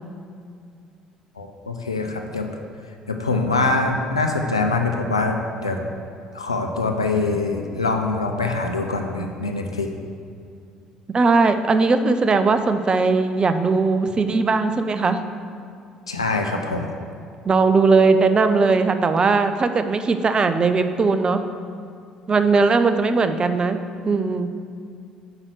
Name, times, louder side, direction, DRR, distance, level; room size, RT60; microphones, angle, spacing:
voice 1, 1.4-2.5 3.1-5.9 6.3-9.9 16.1-16.9, left 3 dB, 90° left, 3 dB, 0.5 m, -24 dB
voice 2, 11.1-15.2 17.4-21.4 22.3-23.8 24.1-24.5, right 4 dB, 30° right, 9 dB, 0.5 m, -19 dB
5.6 x 4.9 x 6.5 m, 2.3 s
figure-of-eight pair, 55°, 3 cm